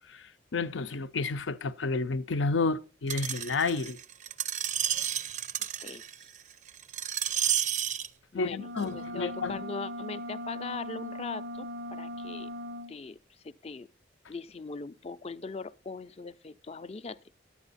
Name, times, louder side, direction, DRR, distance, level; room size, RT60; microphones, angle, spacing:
voice 1, 0.1-4.0 8.3-9.6, left 3 dB, 85° left, 0.6 m, -31 dB
Screech, 3.1-8.1 8.8-8.9, right 10 dB, 40° right, 0.4 m, -31 dB
voice 2, 8.3-12.5 12.9-13.9 14.3-17.2, left 4 dB, 35° left, 0.4 m, -40 dB
sound 1, 8.5-12.9, equal, 80° right, 0.6 m, -39 dB
11.0 x 8.8 x 4.1 m
head